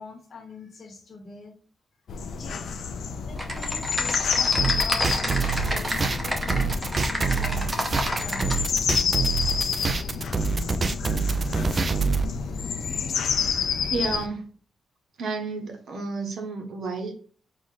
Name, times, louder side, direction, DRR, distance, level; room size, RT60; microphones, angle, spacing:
voice 1, 0.0-1.6 2.4-2.8 3.1-8.6, left 3 dB, 45° left, 2 dB, 1.1 m, -43 dB
sound 1, 2.1-14.3, left 6 dB, 65° left, 0.4 m, -29 dB
Typing, 3.4-8.6, equal, 10° right, 0.7 m, -30 dB
sound 2, 4.6-12.2, right 4 dB, 30° right, 0.3 m, -26 dB
voice 2, 13.9-14.5 15.2-17.1, right 3 dB, 70° right, 4 dB, 1.0 m, -31 dB
5.0 x 2.5 x 4.0 m, 0.43 s
wide cardioid pair, 175°, 0 cm